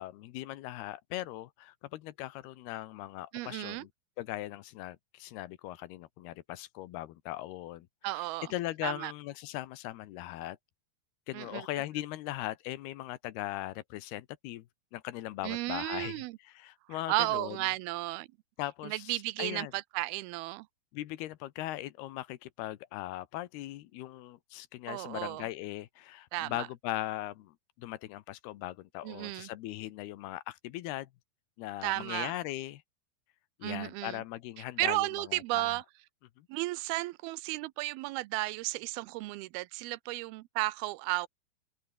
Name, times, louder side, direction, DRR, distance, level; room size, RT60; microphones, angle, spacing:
voice 1, 0.0-3.9 4.2-7.9 8.1-8.2 8.5-10.6 11.3-14.7 14.9-17.6 18.6-19.7 20.9-31.1 31.6-32.8 33.6-35.8 36.4-36.5, left 15 dB, 85° left, 3.1 m, -39 dB
voice 2, 3.3-3.9 8.0-8.5 8.8-9.1 11.3-11.7 15.4-16.4 17.1-18.3 18.8-20.7 24.9-25.5 26.3-26.7 29.0-29.5 31.8-32.3 33.6-34.2 34.8-35.8 36.5-41.3, right 20 dB, 85° right, 2.5 m, -34 dB
omnidirectional pair, 4.5 m